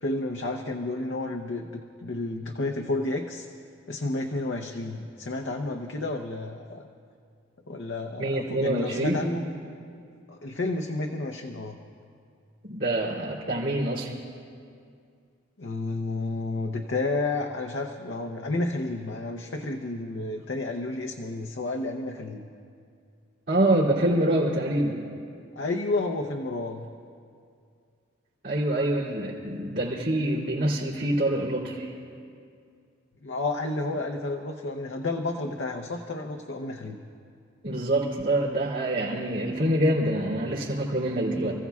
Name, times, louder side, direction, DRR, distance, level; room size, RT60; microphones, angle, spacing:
voice 1, 0.0-1.7 2.0-3.5 3.9-6.9 7.7-9.4 10.3-11.8 15.6-22.5 25.6-26.8 33.2-37.0, left 2 dB, 65° left, 3 dB, 0.7 m, -31 dB
voice 2, 8.2-9.3 12.6-14.1 23.5-25.0 28.4-31.9 37.6-41.5, right 1 dB, 65° right, -8 dB, 2.8 m, -26 dB
29.0 x 15.5 x 2.4 m, 2.3 s
head